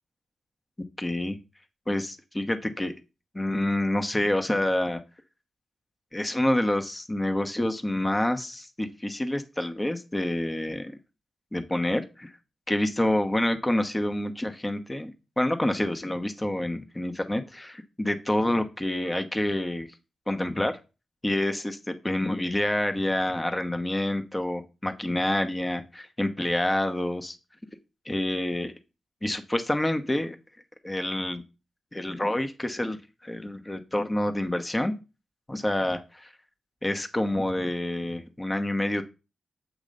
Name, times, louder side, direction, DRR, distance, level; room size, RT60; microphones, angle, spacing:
voice 1, 1.0-1.4 1.9-2.9 3.3-5.0 6.1-10.9 11.5-12.3 12.7-19.9 20.3-20.8 21.2-27.4 28.1-28.7 29.2-30.4 30.8-31.4 31.9-33.0 33.2-34.9 35.5-36.3 36.8-39.0, left 1 dB, 20° left, 7 dB, 1.0 m, -27 dB
7.6 x 3.0 x 5.3 m, 0.30 s
supercardioid pair, 45°, 0 cm